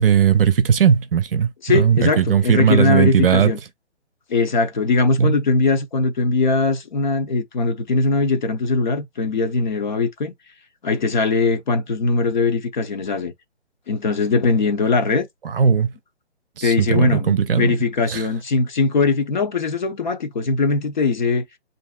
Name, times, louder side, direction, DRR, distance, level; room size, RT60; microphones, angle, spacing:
voice 1, 0.0-3.5 5.2-5.4 15.4-15.9 16.6-17.8 18.1-18.2, right 7 dB, 55° right, 0.6 m, -17 dB
voice 2, 1.6-3.6 4.3-10.3 10.8-13.3 13.9-15.3 16.6-21.5, left 4 dB, 45° left, 0.7 m, -20 dB
7.2 x 2.6 x 2.2 m
hypercardioid pair, 160°, 34 cm